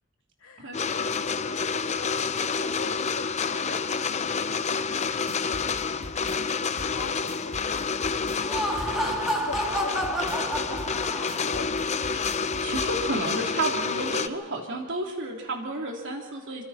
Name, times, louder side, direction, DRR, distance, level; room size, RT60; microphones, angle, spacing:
voice 1, 0.4-9.2 9.5-11.9, left 2 dB, 75° left, 2 dB, 2.9 m, -43 dB
sound 1, 0.7-14.3, left 5 dB, 30° left, 0.6 m, -29 dB
sound 2, 5.0-12.9, equal, 85° right, 6.0 m, -41 dB
Laughter, 8.3-11.6, equal, ahead, 2.6 m, -30 dB
voice 2, 12.3-16.6, right 2 dB, 60° right, 1 dB, 3.3 m, -31 dB
26.0 x 24.5 x 4.3 m, 1.2 s
head